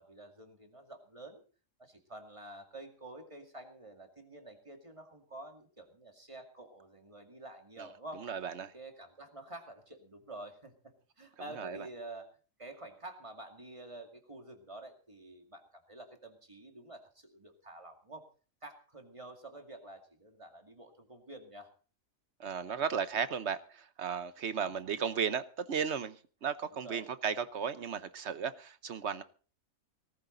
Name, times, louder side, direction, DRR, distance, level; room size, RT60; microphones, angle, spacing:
voice 1, 0.0-1.4 1.8-8.3 8.7-12.3 12.6-18.3 18.6-21.7 26.7-27.1, right 2 dB, 20° right, 2.3 m, -49 dB
voice 2, 8.2-8.7 11.6-11.9 22.4-29.2, right 7 dB, 60° right, 1.1 m, -35 dB
18.5 x 14.0 x 3.9 m
omnidirectional pair, 1.4 m